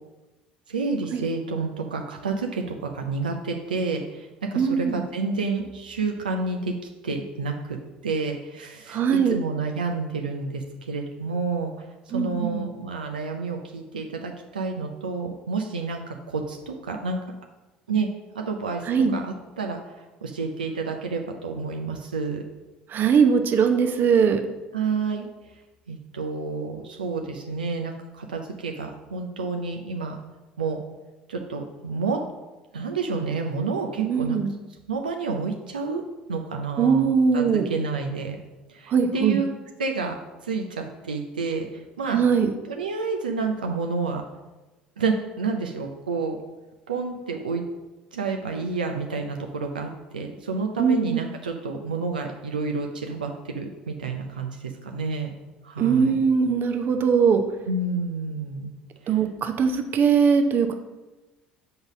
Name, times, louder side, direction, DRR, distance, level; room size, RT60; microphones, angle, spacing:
voice 1, 0.7-6.7 7.0-11.7 12.1-17.2 17.9-18.1 18.3-18.8 19.1-19.8 20.2-22.4 24.7-25.3 25.9-30.2 30.6-30.8 31.3-32.2 32.7-34.4 34.9-36.0 36.3-38.4 38.7-39.5 39.8-40.1 40.4-41.7 42.0-42.2 42.7-44.2 45.0-46.4 46.9-47.6 48.1-55.3 55.6-56.2 57.7-58.7 59.0-59.2, right 4 dB, 85° right, 3 dB, 0.5 m, -29 dB
voice 2, 4.6-5.0 8.9-9.4 12.1-12.6 18.9-19.2 22.9-24.4 34.0-34.5 36.8-37.7 38.9-39.4 42.1-42.5 50.8-51.2 55.8-57.4 59.1-60.7, right 6 dB, 45° right, 7 dB, 0.7 m, -21 dB
5.5 x 3.9 x 6.0 m, 1.1 s
hypercardioid pair, 65°, 5 cm